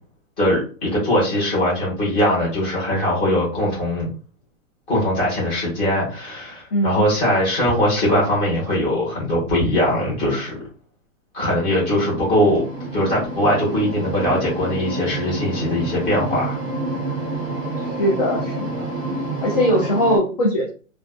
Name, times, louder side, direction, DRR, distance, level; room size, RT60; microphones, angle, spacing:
voice 1, 0.4-4.1 4.9-10.5 11.3-12.6 12.9-16.6, left 1 dB, 15° left, -6 dB, 1.0 m, -21 dB
voice 2, 6.7-7.0 18.0-18.9 19.4-20.7, equal, 35° left, -3 dB, 0.4 m, -20 dB
sound 1, 11.6-20.2, right 2 dB, 15° right, 0.5 m, -28 dB
2.4 x 2.2 x 2.3 m, 0.37 s
hypercardioid pair, 170°, 40 cm